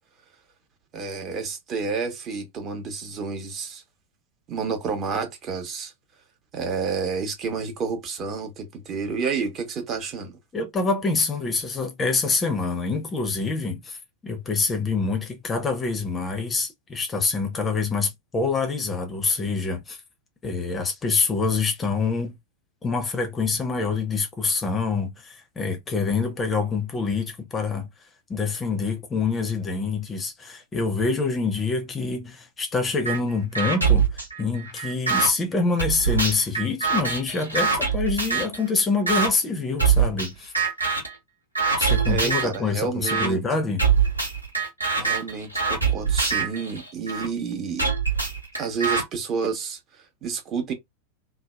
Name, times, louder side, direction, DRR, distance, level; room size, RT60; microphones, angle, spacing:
voice 1, 0.9-3.8 4.5-5.9 6.5-10.4 42.1-43.4 45.0-47.9 48.6-50.7, right 5 dB, 30° right, 0.8 m, -30 dB
voice 2, 10.5-14.0 14.2-20.0 20.4-22.4 22.8-27.9 28.3-40.5 41.8-43.8, left 4 dB, 20° left, 0.6 m, -26 dB
sound 1, 33.0-33.2 33.5-35.3 35.8-38.6 39.1-39.3 39.8-40.3 40.5-41.1 41.5-42.6 43.1-43.3 43.8-47.3 47.8-49.0, right 6 dB, 85° right, 0.9 m, -23 dB
2.7 x 2.0 x 2.2 m
figure-of-eight pair, 90°, 0 cm